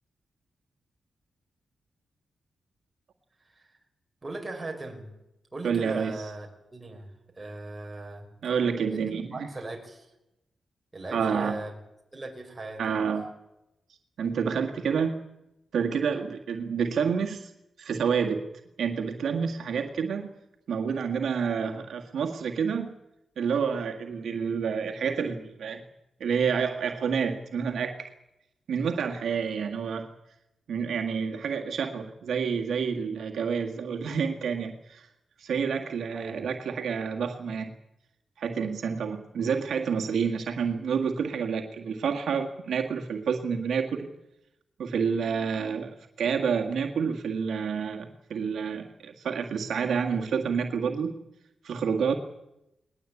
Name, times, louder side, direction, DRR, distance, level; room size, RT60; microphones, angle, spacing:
voice 1, 4.2-5.1 5.5-6.5 6.7-8.3 8.9-10.1 10.9-11.7 12.1-13.0 36.1-36.4, right 2 dB, 20° right, 2 dB, 5.3 m, -39 dB
voice 2, 5.6-6.1 8.4-9.5 11.1-11.6 12.8-13.2 14.2-15.2 15.7-17.5 17.8-18.4 18.8-20.3 20.7-22.9 23.4-25.8 26.2-28.1 28.7-30.1 30.7-35.1 35.4-37.7 38.4-44.1 44.8-51.1 51.6-52.2, right 6 dB, 80° right, 3 dB, 1.8 m, -28 dB
20.0 x 20.0 x 8.4 m, 0.90 s
wide cardioid pair, 115°, 0 cm